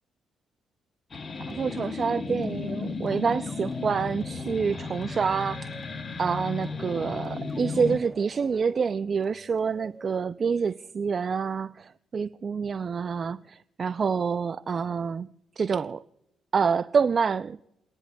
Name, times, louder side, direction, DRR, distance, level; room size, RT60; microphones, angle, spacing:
sound 1, 1.1-8.0, left 4 dB, 35° left, 0.8 m, -34 dB
sound 2, 1.5-10.7, right 1 dB, 5° right, 1.1 m, -49 dB
voice 1, 1.5-5.8 6.2-15.3 15.6-16.0 16.5-17.6, right 6 dB, 40° right, 0.3 m, -27 dB
29.0 x 10.5 x 2.2 m
cardioid pair, 100°, 0 cm